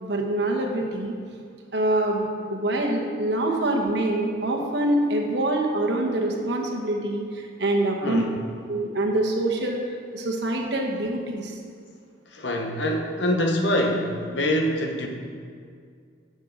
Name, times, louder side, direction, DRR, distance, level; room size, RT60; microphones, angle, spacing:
voice 1, 0.0-1.1 1.7-8.2 8.7-9.8 10.1-11.6, right 1 dB, 60° right, 0 dB, 1.2 m, -25 dB
voice 2, 8.0-8.4 12.3-15.1, equal, 70° left, 2 dB, 1.0 m, -25 dB
11.5 x 6.3 x 3.9 m, 2.2 s
head